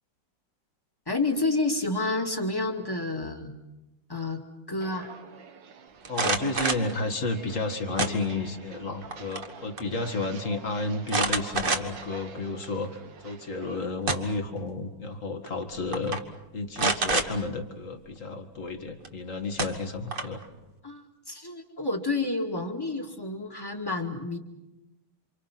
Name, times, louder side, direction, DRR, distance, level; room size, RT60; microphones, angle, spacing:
voice 1, 1.1-3.5 4.1-4.4 4.7-5.2 20.8-24.4, left 2 dB, 10° left, 3 dB, 2.1 m, -29 dB
Walk footsteps, 4.8-13.8, right 5 dB, 75° right, 2.0 m, -46 dB
voice 2, 6.1-16.2 16.5-20.4, left 3 dB, 45° left, 6 dB, 2.3 m, -32 dB
sound 1, 6.1-6.9 8.0-8.6 9.0-9.5 9.8-9.9 11.1-12.1 12.6-12.7 13.7-14.5 15.5-15.6 15.9-16.2 16.8-17.3 19.0-19.1 19.6-20.4, right 3 dB, 30° right, 1.4 m, -27 dB
28.5 x 27.0 x 6.0 m, 1.0 s
omnidirectional pair, 2.0 m